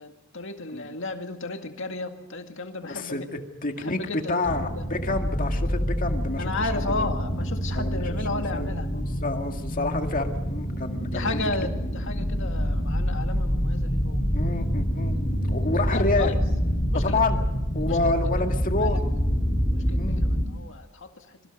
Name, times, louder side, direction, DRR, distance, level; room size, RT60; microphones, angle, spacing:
voice 1, 0.0-3.3 3.7-4.4 4.8-4.9 6.4-8.9 11.1-14.2 15.8-16.3 16.9-17.4 17.8-18.5 18.8-18.9 19.7-21.5, left 3 dB, 60° left, 5 dB, 2.1 m, -34 dB
voice 2, 2.8-4.0 4.3-6.7 7.0-7.1 7.7-11.4 14.3-15.2 15.5-16.3 17.0-17.4 17.7-19.0 19.9-20.2, left 2 dB, 40° left, 5 dB, 2.0 m, -29 dB
sound 1, 4.5-20.5, equal, 15° left, 3.0 m, -26 dB
26.0 x 23.5 x 5.4 m, 1.0 s
head